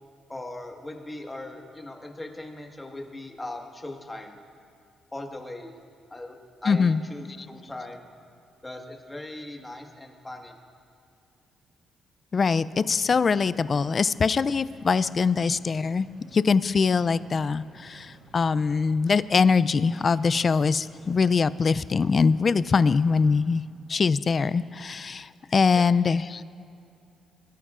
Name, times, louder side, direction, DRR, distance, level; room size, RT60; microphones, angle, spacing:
voice 1, 0.3-4.4 5.1-5.7 6.1-8.0 8.6-10.5 25.7-25.8, left 2 dB, 15° left, 2 dB, 1.6 m, -39 dB
voice 2, 6.7-7.0 12.3-16.1 16.3-23.6 23.9-26.4, left 5 dB, 40° left, 16 dB, 0.3 m, -23 dB
sound 1, 12.7-23.2, right 3 dB, 90° right, 2.3 m, -52 dB
22.5 x 13.5 x 2.5 m, 2.5 s
cardioid pair, 90°, 0 cm